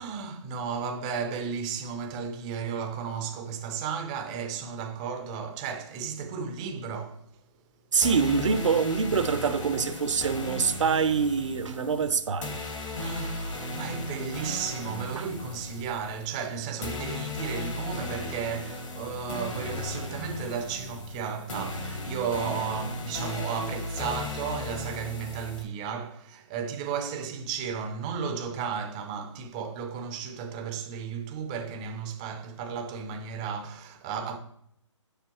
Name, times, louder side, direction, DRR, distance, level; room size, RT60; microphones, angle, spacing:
voice 1, 0.0-7.3 13.0-34.4, right 6 dB, 15° right, 0.4 m, -34 dB
voice 2, 7.9-12.6 13.0-13.1 15.2-15.3, right 6 dB, 70° right, 0.7 m, -25 dB
sound 1, 8.0-25.6, left 2 dB, 75° left, 2.2 m, -36 dB
7.6 x 6.8 x 2.9 m
hypercardioid pair, 160°, 16 cm